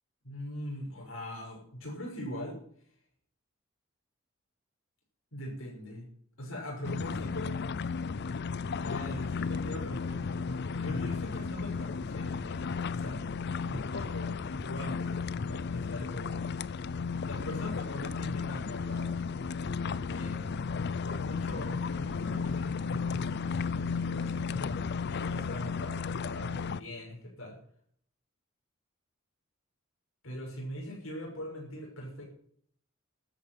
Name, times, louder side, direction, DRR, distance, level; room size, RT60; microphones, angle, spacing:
voice 1, 0.2-2.6 5.3-6.1 6.4-7.6 8.8-12.6 12.9-13.2 13.6-16.5 17.2-19.1 19.8-20.6 21.0-27.6 30.2-32.2, left 1 dB, 75° left, -2 dB, 6.2 m, -41 dB
sound 1, 6.8-26.8, left 5 dB, 55° left, 0.5 m, -34 dB
13.0 x 9.0 x 9.3 m, 0.62 s
head